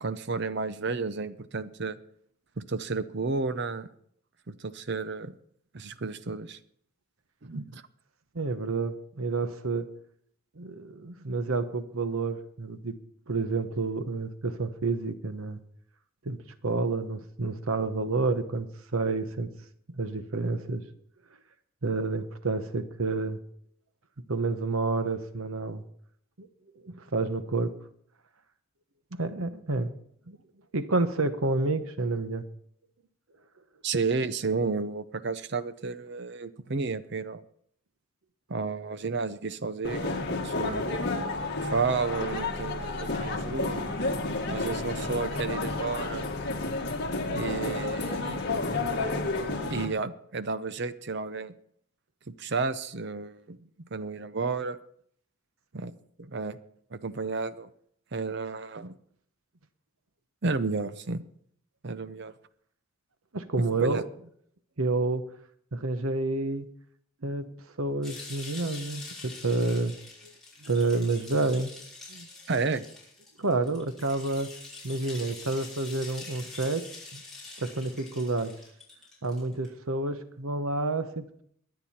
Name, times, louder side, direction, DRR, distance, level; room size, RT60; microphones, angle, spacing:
voice 1, 0.0-2.0 2.6-3.9 4.5-5.3 5.7-6.6 7.4-7.8 33.8-37.4 38.5-40.9 41.6-43.8 44.5-46.2 47.3-48.4 49.7-51.5 52.3-53.6 53.9-54.8 55.7-55.9 56.2-56.6 56.9-57.7 58.1-58.9 60.4-61.2 61.8-62.3 63.7-64.0 72.5-72.8, right 4 dB, 50° right, 14 dB, 0.7 m, -32 dB
voice 2, 8.3-9.9 10.6-12.9 13.3-15.6 16.2-19.5 19.9-20.8 21.8-23.4 24.3-25.8 26.4-26.5 26.8-27.8 29.1-29.9 30.3-30.4 30.7-32.4 63.3-64.0 64.8-65.2 65.7-66.7 67.2-67.5 67.8-69.9 70.2-70.3 70.6-71.7 72.1-72.3 73.4-74.5 74.8-76.8 77.1-77.2 77.6-78.5 79.2-81.4, right 3 dB, 75° right, 11 dB, 1.0 m, -29 dB
sound 1, 39.8-49.9, left 2 dB, 50° left, 1.9 m, -31 dB
sound 2, 68.0-79.7, left 3 dB, ahead, 5.8 m, -45 dB
22.5 x 9.1 x 4.3 m, 0.66 s
head